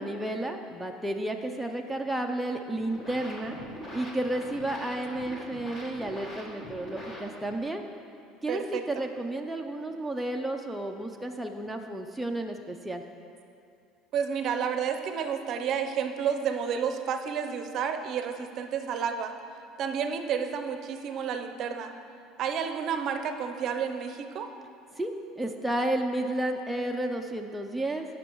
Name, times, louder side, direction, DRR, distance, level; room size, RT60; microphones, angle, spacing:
voice 1, 0.0-3.6 3.9-7.8 8.4-13.0 25.0-28.1, right 1 dB, 5° right, 2 dB, 0.4 m, -32 dB
sound 1, 2.7-7.7, left 1 dB, 25° left, 1.5 m, -43 dB
voice 2, 8.5-8.8 14.1-19.3 19.8-21.9 22.4-24.5, right 7 dB, 50° right, 6 dB, 0.6 m, -30 dB
15.5 x 6.2 x 3.0 m, 2.5 s
cardioid pair, 135°, 0 cm